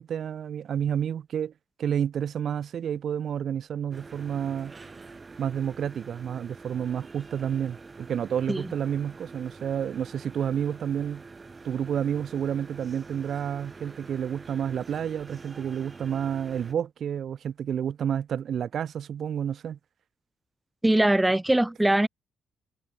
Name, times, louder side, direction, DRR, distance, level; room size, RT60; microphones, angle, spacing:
voice 1, 0.0-1.5 1.8-4.7 5.4-11.2 11.6-19.8, right 8 dB, 60° right, 0.6 m, -30 dB
sound 1, 3.9-16.7, right 4 dB, 30° right, 7.0 m, -46 dB
voice 2, 20.8-22.1, right 1 dB, 10° right, 0.4 m, -21 dB
cardioid pair, 90°, 0 cm